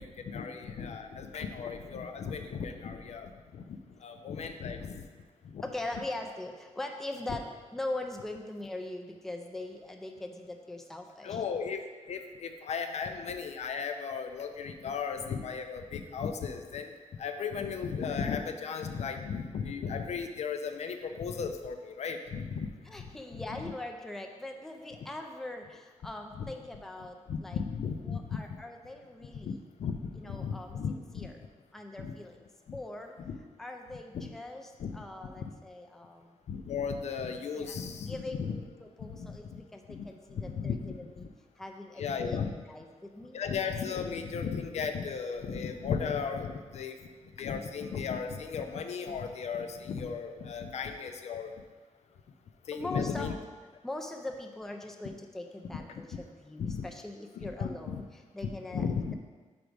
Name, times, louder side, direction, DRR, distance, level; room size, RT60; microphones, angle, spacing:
voice 1, 0.0-5.0 5.5-5.6 11.2-11.8 12.1-16.9 17.2-22.7 23.0-23.4 26.4-26.5 27.3-28.2 29.5-29.6 29.8-31.3 32.0-32.1 32.7-32.8 33.3-33.4 34.1-34.3 34.8-35.0 35.4-35.5 36.5-38.6 39.0-39.6 39.9-41.3 42.0-42.5 43.3-47.0 47.4-51.5 52.7-53.3 55.9-56.2 56.6-56.8 57.4-58.0 58.4-59.1, left 6 dB, 65° left, 6 dB, 0.5 m, -35 dB
voice 2, 5.6-11.4 22.8-27.6 28.0-29.6 30.1-31.4 31.7-33.2 33.6-36.4 37.5-41.3 41.6-43.4 52.7-53.5 53.8-59.1, left 2 dB, 5° left, 3 dB, 0.4 m, -41 dB
5.1 x 4.6 x 5.1 m, 1.4 s
wide cardioid pair, 170°, 12 cm